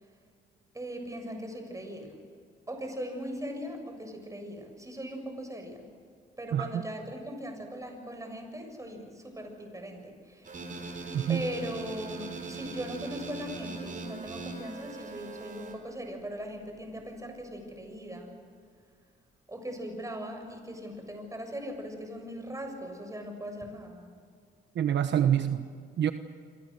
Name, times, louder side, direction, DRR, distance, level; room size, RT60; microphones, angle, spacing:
voice 1, 0.7-2.1 2.7-5.9 6.4-10.7 11.3-18.3 19.5-24.1, equal, 15° right, 4 dB, 7.3 m, -39 dB
voice 2, 6.5-6.8 11.1-11.4 24.7-25.7 26.0-26.1, right 9 dB, 60° right, 9 dB, 1.2 m, -26 dB
sound 1, 10.4-15.7, right 4 dB, 40° right, 5.1 m, -40 dB
28.0 x 24.5 x 6.8 m, 2.1 s
cardioid pair, 90°, 20 cm